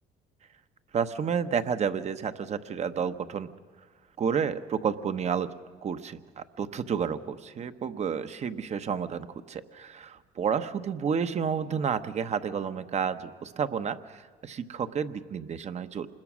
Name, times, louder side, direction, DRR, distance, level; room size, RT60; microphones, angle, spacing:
voice 1, 0.9-3.5 4.2-5.5 5.8-16.1, right 7 dB, 40° right, 10 dB, 1.0 m, -30 dB
26.5 x 21.0 x 6.2 m, 1.5 s
cardioid pair, 110°, 17 cm